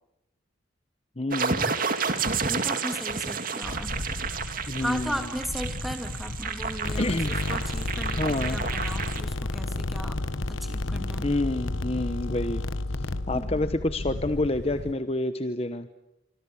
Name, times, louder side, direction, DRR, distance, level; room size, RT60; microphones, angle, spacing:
voice 1, 1.2-1.7 4.7-5.2 7.0-7.3 8.2-8.6 11.2-12.6 13.3-15.9, left 2 dB, 30° left, 10 dB, 1.0 m, -28 dB
sound 1, 1.3-9.2, right 5 dB, 45° right, 2.3 m, -31 dB
voice 2, 2.4-4.0 4.8-10.2 10.5-11.3 13.3-13.7, equal, ahead, 6 dB, 2.7 m, -36 dB
Wind, 3.6-14.9, left 2 dB, 55° left, 1.1 m, -36 dB
sound 2, 6.8-13.7, left 2 dB, 90° left, 1.2 m, -32 dB
26.5 x 25.0 x 8.5 m, 0.93 s
head